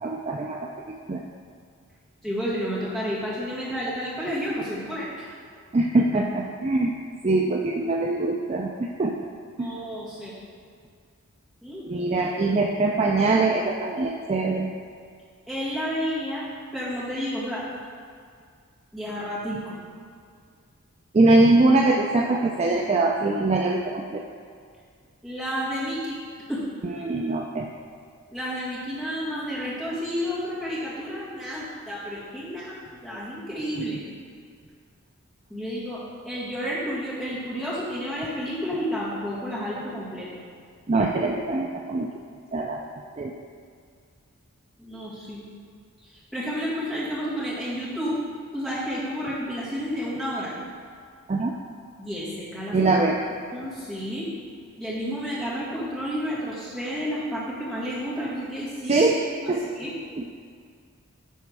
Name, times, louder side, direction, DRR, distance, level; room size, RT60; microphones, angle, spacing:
voice 1, 0.0-0.7 1.1-1.2 5.7-6.9 7.2-9.1 9.6-9.7 11.8-14.7 21.1-24.2 26.8-27.7 33.8-33.9 40.9-42.1 42.5-42.8 43.2-43.3 51.3-51.5 52.7-53.2 58.9-59.2 59.5-59.8 60.2-60.3, right 2 dB, 30° right, 1 dB, 0.4 m, -22 dB
voice 2, 2.2-5.3 9.6-10.3 11.6-11.8 15.5-16.5 16.7-17.6 18.9-19.8 25.2-26.2 26.5-26.6 28.3-34.0 35.5-40.3 44.8-45.4 46.0-48.2 48.5-50.5 52.0-52.9 53.5-54.3 54.8-59.0 59.4-59.9, equal, ahead, -10 dB, 2.2 m, -31 dB
11.0 x 4.2 x 4.7 m, 2.2 s
head